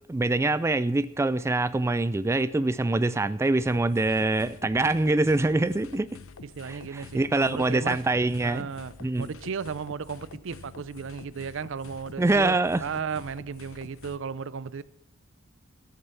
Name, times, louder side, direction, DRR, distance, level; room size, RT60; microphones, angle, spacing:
voice 1, 0.1-6.2 6.6-8.7 9.0-9.3 12.2-12.8, right 2 dB, 15° right, 0.3 m, -24 dB
sound 1, 3.6-14.2, left 4 dB, 85° left, 0.8 m, -47 dB
voice 2, 6.5-8.0 8.4-12.6 12.8-14.8, right 6 dB, 65° right, 0.5 m, -35 dB
13.0 x 6.7 x 7.0 m
head